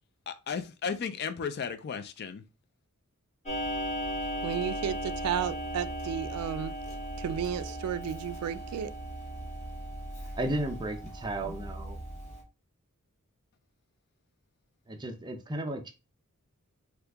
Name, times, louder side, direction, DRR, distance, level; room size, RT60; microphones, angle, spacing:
voice 1, 0.3-2.4, left 6 dB, 50° left, 0.4 m, -34 dB
Clock, 3.5-12.4, equal, 30° left, 0.9 m, -37 dB
voice 2, 4.4-6.7 7.2-8.9, right 8 dB, 85° right, 0.3 m, -33 dB
voice 3, 10.3-12.0 14.9-15.9, right 1 dB, 20° right, 0.5 m, -34 dB
2.8 x 2.4 x 3.4 m
head